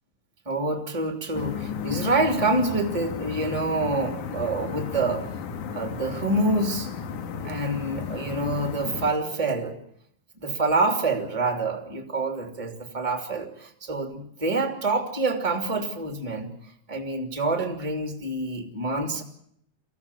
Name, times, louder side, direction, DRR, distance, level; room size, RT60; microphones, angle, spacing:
voice 1, 0.4-5.3 5.7-6.9 7.4-9.8 10.4-16.5 16.9-19.2, right 2 dB, 10° right, 4 dB, 2.7 m, -26 dB
sound 1, 1.3-9.1, left 7 dB, 85° left, 3.0 m, -34 dB
24.0 x 16.0 x 9.9 m, 0.70 s
omnidirectional pair, 3.5 m